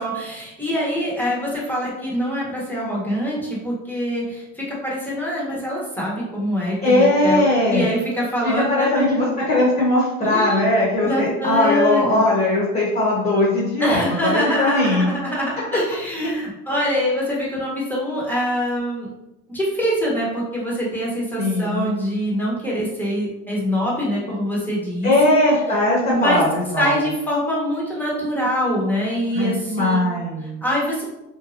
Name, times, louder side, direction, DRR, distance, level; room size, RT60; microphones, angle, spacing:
voice 1, 0.0-9.1 10.2-10.7 11.0-12.2 13.8-19.1 19.5-25.3 26.1-26.4 26.8-30.0 30.4-31.0, equal, 5° left, -5 dB, 1.0 m, -24 dB
voice 2, 6.8-7.9 8.4-15.1 21.4-22.1 25.0-26.9 29.3-30.6, left 1 dB, 30° left, -6 dB, 1.1 m, -19 dB
3.0 x 2.1 x 2.6 m, 0.92 s
supercardioid pair, 110°, 32 cm